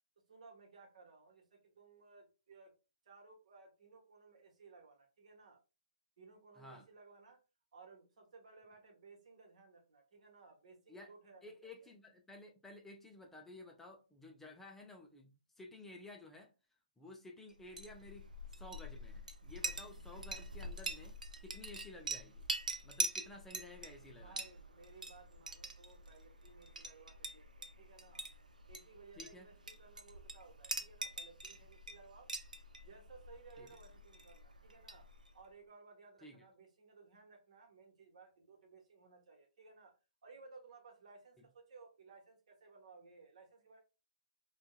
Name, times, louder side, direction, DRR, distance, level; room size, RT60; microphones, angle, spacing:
voice 1, 0.2-2.7 3.0-5.6 6.2-7.4 7.7-11.9 23.5-28.3 28.7-32.3 32.8-35.1 35.3-39.9 40.2-43.8, right 4 dB, 60° right, 1.0 m, -59 dB
voice 2, 6.6-6.9 10.9-11.1 11.4-16.5 17.0-18.3 18.6-22.5 22.8-24.5 29.2-29.5 33.6-33.7 36.2-36.4, left 2 dB, 5° left, 0.3 m, -54 dB
Chink clink, 17.6-35.4, right 2 dB, 90° right, 0.4 m, -45 dB
2.6 x 2.2 x 2.3 m
figure-of-eight pair, 130°, 4 cm